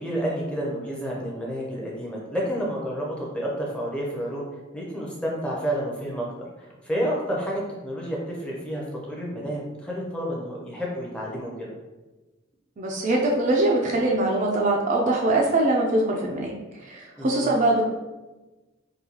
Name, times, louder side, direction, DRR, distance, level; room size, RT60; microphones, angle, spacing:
voice 1, 0.0-4.4 4.7-6.3 6.6-11.7 17.2-17.5, equal, 5° left, -4 dB, 0.6 m, -30 dB
voice 2, 12.8-16.5 16.8-17.9, right 2 dB, 40° right, -1 dB, 0.4 m, -22 dB
3.8 x 2.3 x 2.8 m, 1.1 s
head